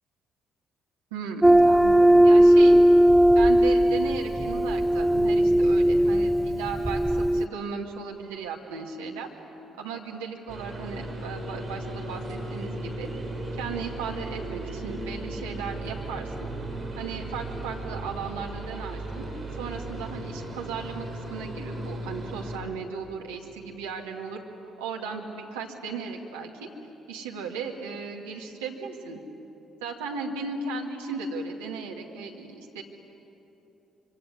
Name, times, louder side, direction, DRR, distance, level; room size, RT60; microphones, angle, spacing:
voice 1, 1.1-2.8 3.3-9.3 9.7-13.1 13.5-16.5 17.0-19.3 19.6-24.4 24.8-26.7 27.1-29.2 29.8-32.8, right 5 dB, 75° right, 0 dB, 2.3 m, -36 dB
sound 1, 1.4-7.5, right 1 dB, 5° right, 0.6 m, -18 dB
sound 2, 10.5-22.6, right 1 dB, 30° right, 5.5 m, -36 dB
25.5 x 24.5 x 9.6 m, 3.0 s
figure-of-eight pair, 45°, 0 cm